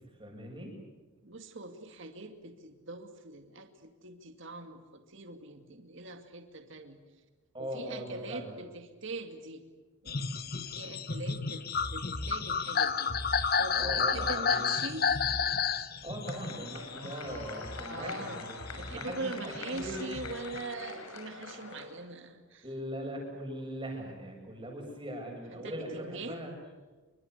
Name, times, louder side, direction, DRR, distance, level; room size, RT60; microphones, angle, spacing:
voice 1, 0.2-0.7 7.5-8.5 13.7-14.7 16.0-20.0 22.6-26.5, right 1 dB, 20° right, 1 dB, 7.7 m, -40 dB
voice 2, 1.2-7.0 7.6-9.6 10.0-10.3 10.7-11.6 11.9-13.1 13.6-15.1 17.8-18.4 18.7-22.6 25.5-26.4, right 2 dB, 55° right, 6 dB, 2.4 m, -42 dB
sound 1, 10.1-18.1 18.5-20.7, left 6 dB, 45° left, 1.3 m, -31 dB
sound 2, 16.2-21.9, left 3 dB, 75° left, 6.4 m, -43 dB
29.0 x 25.0 x 8.1 m, 1.3 s
head